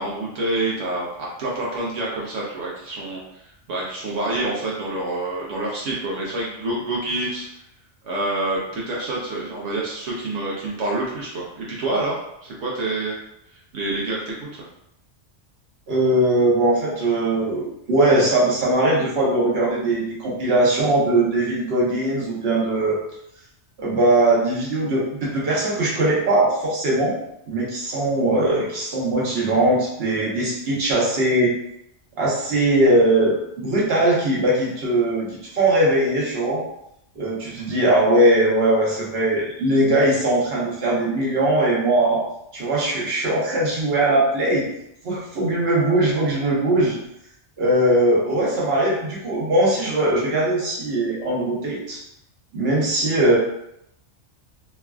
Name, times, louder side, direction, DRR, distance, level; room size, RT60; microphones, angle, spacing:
voice 1, 0.0-3.2 3.7-7.5 8.0-13.2 13.7-14.7, right 2 dB, 85° right, -4 dB, 0.9 m, -27 dB
voice 2, 15.9-23.0 23.8-27.1 27.5-31.5 32.2-36.6 37.2-42.2 42.5-44.7 45.0-46.9 47.6-52.0 52.5-53.4, right 1 dB, 60° right, -5 dB, 1.1 m, -20 dB
3.1 x 2.3 x 2.3 m, 0.78 s
omnidirectional pair, 1.2 m